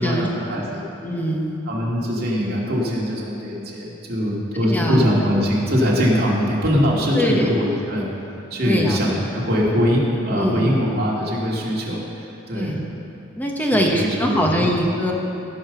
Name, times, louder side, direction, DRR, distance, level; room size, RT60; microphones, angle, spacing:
voice 1, 0.0-0.8 1.7-8.1 8.5-12.8 13.7-14.7, equal, 55° right, -4 dB, 2.3 m, -22 dB
voice 2, 1.0-1.6 4.5-5.1 5.3-5.4 7.1-7.5 8.6-9.0 10.3-10.9 12.5-12.9 13.3-15.1, equal, 10° left, 0 dB, 1.0 m, -22 dB
15.5 x 5.4 x 6.9 m, 2.8 s
head